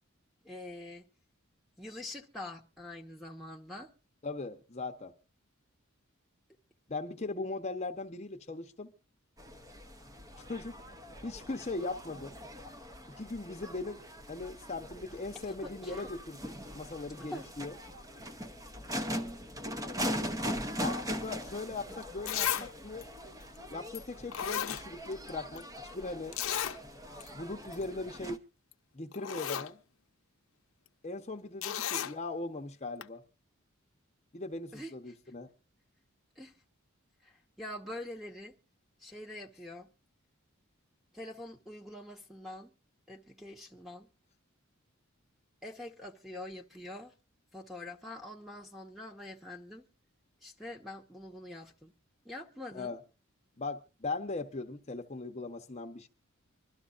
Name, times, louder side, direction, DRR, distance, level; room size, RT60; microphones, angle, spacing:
voice 1, 0.4-1.0 1.8-3.9 15.5-16.1 17.2-17.5 34.7-34.9 36.4-36.5 37.2-38.6 39.0-39.9 41.1-42.7 43.1-44.1 45.6-47.1 47.5-49.9 50.4-51.9 52.2-53.0, left 1 dB, ahead, 1.2 m, -45 dB
voice 2, 4.2-5.1 6.9-8.9 10.4-10.8 11.2-12.4 13.2-14.0 14.3-17.8 20.8-23.1 23.7-25.6 25.9-26.4 27.3-28.4 28.9-29.8 31.0-33.2 34.3-35.5 52.7-53.0 53.6-56.1, left 3 dB, 30° left, 0.9 m, -39 dB
sound 1, 9.4-28.4, equal, 15° right, 0.8 m, -41 dB
Zipper (clothing), 21.7-21.8 22.3-22.7 23.0-23.1 23.9-24.0 24.3-25.3 25.6-25.7 26.3-26.8 27.2-27.3 27.6-27.8 28.7-28.8 29.1-29.7 31.6-32.1 33.0-33.1, left 10 dB, 80° left, 0.7 m, -34 dB
25.5 x 12.5 x 2.5 m
head